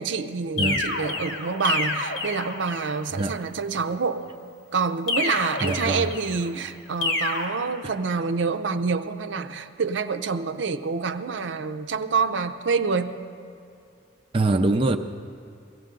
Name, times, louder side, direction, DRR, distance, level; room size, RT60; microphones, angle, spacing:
voice 1, 0.0-4.2 4.7-13.2, right 5 dB, 80° right, 9 dB, 0.6 m, -27 dB
sound 1, 0.6-3.0 5.1-6.4 7.0-7.4, left 2 dB, 85° left, 1.7 m, -28 dB
voice 2, 5.6-6.1 14.3-15.0, right 2 dB, 30° right, 5 dB, 0.4 m, -23 dB
17.5 x 15.0 x 3.8 m, 2.5 s
head